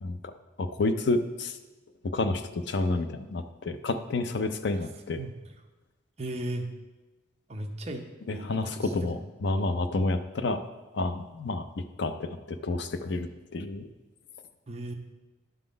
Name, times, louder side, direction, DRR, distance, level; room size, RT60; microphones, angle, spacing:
voice 1, 0.0-0.3 0.6-1.5 2.0-5.2 8.3-10.6 10.9-11.7 12.0-13.9, left 2 dB, 55° left, 10 dB, 0.4 m, -29 dB
voice 2, 6.2-6.7 7.5-8.0 8.3-9.1 14.7-14.9, right 1 dB, 30° right, 4 dB, 0.6 m, -36 dB
11.0 x 3.9 x 5.0 m, 1.2 s
head